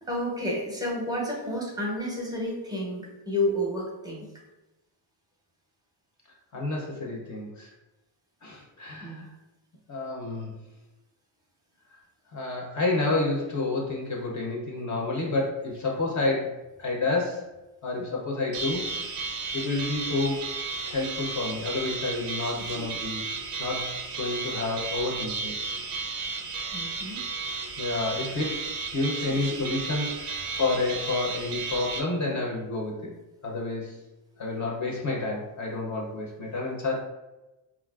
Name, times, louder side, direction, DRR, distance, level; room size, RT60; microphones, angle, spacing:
voice 1, 0.0-4.3 9.0-9.3 18.0-18.1 26.7-27.2, left 1 dB, 10° right, -2 dB, 0.6 m, -30 dB
voice 2, 6.5-7.7 8.4-9.2 9.9-10.5 12.3-17.5 17.8-19.0 19.5-20.5 20.8-23.3 23.6-25.6 27.8-28.6 28.9-33.1 33.4-34.0 34.4-37.0, left 3 dB, 35° left, -2 dB, 0.6 m, -29 dB
sound 1, 18.5-32.0, right 4 dB, 85° right, 0.6 m, -34 dB
4.0 x 2.4 x 2.3 m, 1.0 s
cardioid pair, 140°, 49 cm